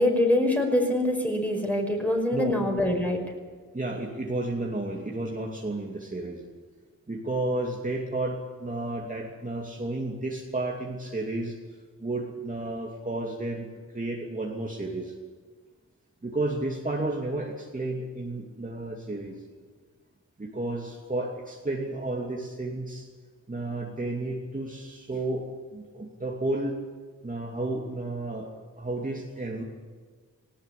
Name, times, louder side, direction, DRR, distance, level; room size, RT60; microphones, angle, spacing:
voice 1, 0.0-3.2, left 1 dB, 5° left, 2 dB, 5.5 m, -24 dB
voice 2, 3.7-6.4 7.1-11.6 12.0-13.7 13.9-15.1 16.2-19.3 20.4-23.1 23.5-25.4 25.7-26.8 27.2-28.5 28.8-29.6, right 2 dB, 25° right, -1 dB, 2.7 m, -32 dB
18.5 x 18.5 x 8.6 m, 1.5 s
cardioid pair, 80°, 32 cm